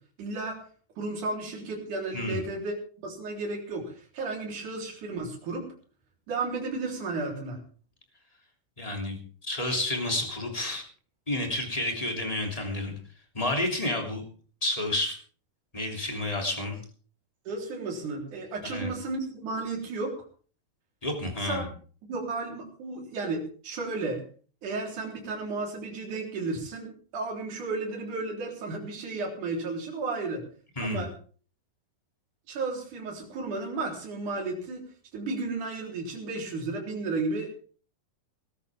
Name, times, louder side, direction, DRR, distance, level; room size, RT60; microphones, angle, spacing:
voice 1, 0.2-0.6 1.0-2.8 3.0-5.6 6.3-7.6 17.4-20.2 21.4-21.6 22.0-24.2 24.6-30.4 30.8-31.1 32.5-34.8 35.1-37.5, right 3 dB, 50° right, 0 dB, 5.1 m, -33 dB
voice 2, 8.8-10.8 11.3-12.9 13.3-14.2 14.6-15.2 15.7-16.8 18.6-18.9 21.0-21.7 30.8-31.1, left 1 dB, 10° left, 2 dB, 2.4 m, -30 dB
20.5 x 13.5 x 3.6 m, 0.41 s
omnidirectional pair, 4.8 m